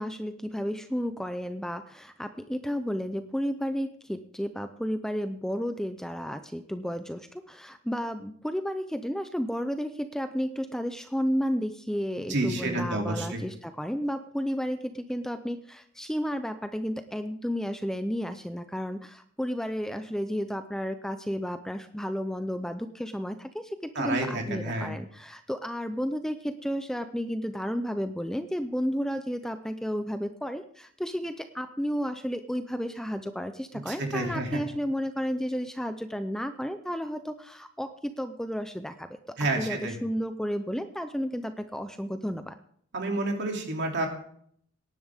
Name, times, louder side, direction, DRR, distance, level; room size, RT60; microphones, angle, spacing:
voice 1, 0.0-42.6, equal, ahead, 9 dB, 0.5 m, -32 dB
voice 2, 12.3-13.4 23.9-24.9 33.9-34.6 39.4-39.9 42.9-44.1, right 2 dB, 55° right, 2 dB, 2.7 m, -29 dB
18.0 x 10.5 x 3.5 m, 0.63 s
head